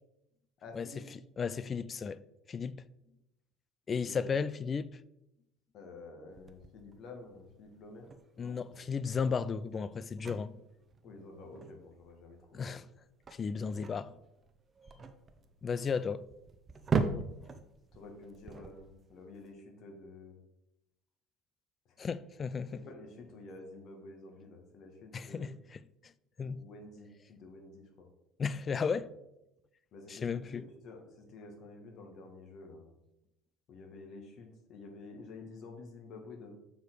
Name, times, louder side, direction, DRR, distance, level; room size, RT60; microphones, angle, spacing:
voice 1, 0.6-1.0 4.0-4.3 5.7-8.6 11.0-12.8 17.9-20.3 22.7-25.5 26.4-28.1 28.9-29.0 29.9-32.9 33.7-36.5, left 3 dB, 50° left, 1.7 m, -50 dB
voice 2, 1.4-2.2 2.5-2.8 3.9-5.0 8.4-10.6 12.5-12.9 13.3-14.2 15.6-16.2 22.0-22.8 25.1-25.8 26.4-26.6 28.4-29.1 30.1-30.7, left 5 dB, 30° left, 0.4 m, -34 dB
sound 1, 6.3-19.5, right 4 dB, 30° right, 0.8 m, -40 dB
6.8 x 4.8 x 4.7 m
figure-of-eight pair, 65°, 0 cm